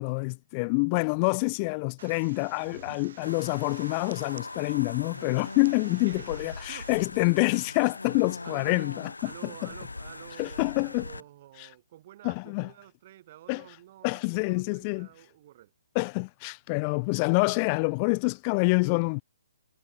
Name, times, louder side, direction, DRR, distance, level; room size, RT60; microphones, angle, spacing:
voice 1, 0.0-9.1 10.4-11.1 12.2-12.7 13.5-13.6 14.0-15.1 15.9-19.2, left 33 dB, 30° left, 0.7 m, -27 dB
sound 1, 2.0-7.0, right 7 dB, 55° right, 5.5 m, -50 dB
sound 2, 3.2-11.2, left 3 dB, 80° left, 1.7 m, -41 dB
voice 2, 6.1-7.0 8.4-15.7, right 14 dB, 40° right, 5.0 m, -49 dB
figure-of-eight pair, 135°, 0 cm